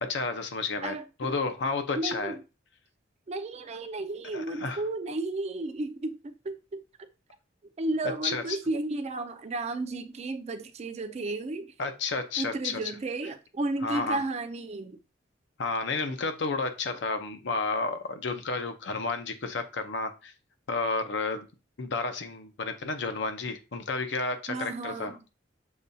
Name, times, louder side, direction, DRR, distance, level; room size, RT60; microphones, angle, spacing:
voice 1, 0.0-0.9 1.2-2.4 4.3-4.8 8.0-8.6 11.8-12.8 13.8-14.2 15.6-20.3 20.7-21.5 21.8-25.2, left 3 dB, 65° left, 0.6 m, -31 dB
voice 2, 0.8-1.4 1.9-2.4 3.3-6.2 6.4-6.8 7.8-11.7 12.4-15.0 24.5-25.2, right 2 dB, 35° right, 0.4 m, -33 dB
6.6 x 2.3 x 2.6 m
head